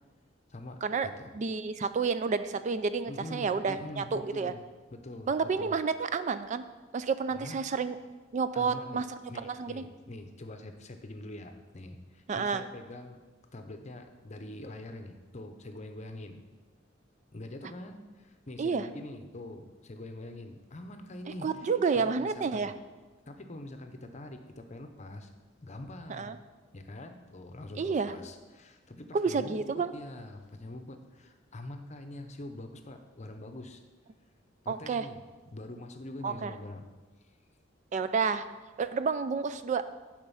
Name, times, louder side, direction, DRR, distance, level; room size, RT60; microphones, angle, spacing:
voice 1, 0.5-1.3 3.1-4.6 4.9-5.8 7.3-7.6 8.5-9.0 9.3-13.2 13.5-16.4 17.3-22.8 23.3-25.3 25.6-26.4 26.7-33.8 34.6-36.9, left 1 dB, 35° left, 6 dB, 0.8 m, -44 dB
voice 2, 1.3-4.5 5.3-6.6 6.9-8.0 8.3-9.0 9.5-9.8 12.3-12.6 18.6-18.9 21.4-22.7 26.1-26.4 27.8-28.1 29.1-29.9 34.7-35.1 36.2-36.5 37.9-38.4 38.8-39.8, right 5 dB, 40° right, 12 dB, 0.3 m, -30 dB
10.5 x 5.1 x 5.6 m, 1.3 s
head